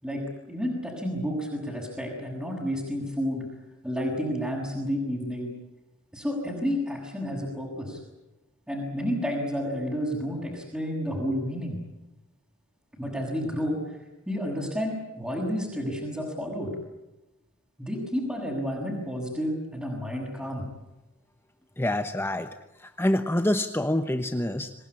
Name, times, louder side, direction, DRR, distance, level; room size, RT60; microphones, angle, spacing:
voice 1, 0.0-3.5 3.8-5.5 6.1-8.0 8.7-11.8 13.0-14.0 14.3-16.8 17.8-20.7, equal, 5° right, -5 dB, 6.3 m, -30 dB
voice 2, 21.8-24.7, left 1 dB, 10° left, 8 dB, 1.0 m, -27 dB
27.0 x 18.5 x 9.7 m, 0.97 s
head